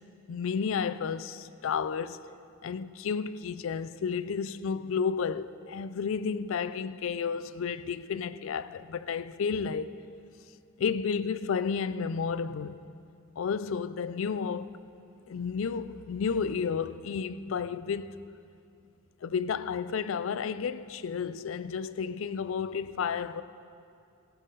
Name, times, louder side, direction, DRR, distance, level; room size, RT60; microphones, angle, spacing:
voice 1, 0.3-2.2 2.6-9.9 10.8-12.8 13.4-14.8 15.3-18.1 19.2-23.4, left 6 dB, 70° left, 0.4 m, -32 dB
16.0 x 7.4 x 5.4 m
head